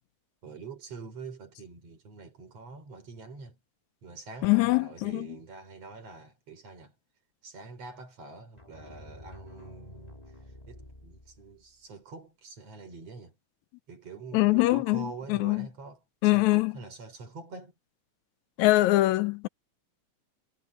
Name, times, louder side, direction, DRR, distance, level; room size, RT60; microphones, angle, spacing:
voice 1, 0.4-3.6 4.0-6.9 7.4-10.3 10.7-13.4 13.9-17.7, right 4 dB, 60° right, 5.1 m, -45 dB
voice 2, 4.4-5.3 14.3-15.7 16.2-16.7 18.6-19.5, left 19 dB, 85° left, 2.0 m, -23 dB
sound 1, 8.6-11.7, left 1 dB, 15° left, 3.1 m, -49 dB
omnidirectional pair, 3.3 m